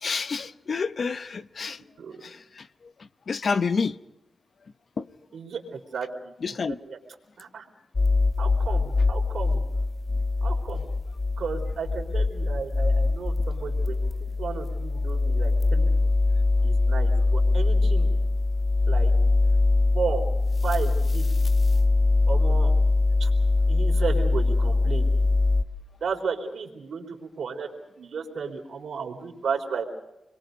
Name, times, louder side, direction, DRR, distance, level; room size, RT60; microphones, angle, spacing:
voice 1, 0.0-1.8 2.2-2.7 3.0-4.0 5.0-5.1 6.4-6.8 15.8-15.9, left 5 dB, 55° left, 0.8 m, -29 dB
voice 2, 5.3-6.3 6.8-7.0 7.4-7.6 8.4-9.6 10.4-10.8 11.4-15.9 16.6-18.1 18.9-19.1 19.9-20.2 20.6-21.3 22.3-22.7 23.2-23.3 23.7-25.1 26.0-27.7 28.0-29.8, right 5 dB, 80° right, 3.8 m, -33 dB
sound 1, 7.9-25.6, left 3 dB, 35° left, 1.6 m, -22 dB
28.5 x 22.5 x 5.2 m
cardioid pair, 85°, 0 cm